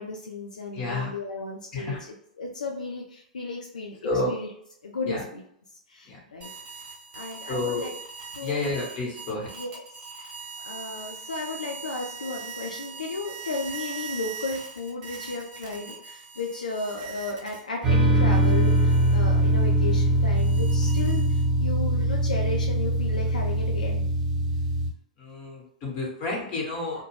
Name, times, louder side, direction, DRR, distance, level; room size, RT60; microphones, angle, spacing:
voice 1, 0.0-2.0 2.4-4.0 4.3-4.5 4.8-5.4 5.9-6.5 7.1-7.9 8.3-8.7 9.5-9.8 10.2-10.3 10.6-24.1, left 3 dB, 75° left, 1 dB, 0.4 m, -34 dB
voice 2, 0.7-1.1 1.7-2.0 4.0-4.3 5.0-5.2 6.1-6.2 7.5-7.9 8.4-9.5 25.2-27.0, left 2 dB, 35° left, -2 dB, 1.1 m, -30 dB
sound 1, 6.4-17.9 18.3-21.7, right 5 dB, 40° right, 0.9 m, -41 dB
sound 2, 17.8-24.9, right 1 dB, 15° right, 1.0 m, -22 dB
2.3 x 2.1 x 3.1 m, 0.70 s
figure-of-eight pair, 105°, 4 cm